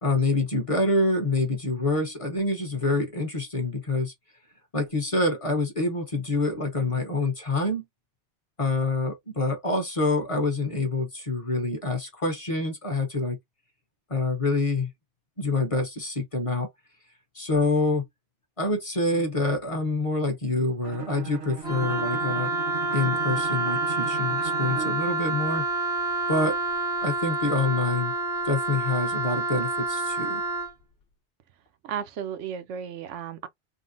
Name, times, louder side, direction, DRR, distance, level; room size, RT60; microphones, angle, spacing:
voice 1, 0.0-4.1 4.7-7.8 8.6-13.4 14.1-14.9 15.4-16.7 17.3-18.0 18.6-22.5 22.9-25.7 26.3-26.6 27.0-28.1 28.4-30.4, left 2 dB, 35° left, 0.8 m, -26 dB
Bowed string instrument, 20.8-25.1, right 6 dB, 55° right, 0.7 m, -38 dB
Wind instrument woodwind instrument, 21.6-30.7, right 3 dB, 55° left, 1.0 m, -28 dB
voice 2, 31.8-33.5, right 8 dB, 90° right, 0.9 m, -34 dB
3.5 x 2.0 x 2.5 m
omnidirectional pair, 1.2 m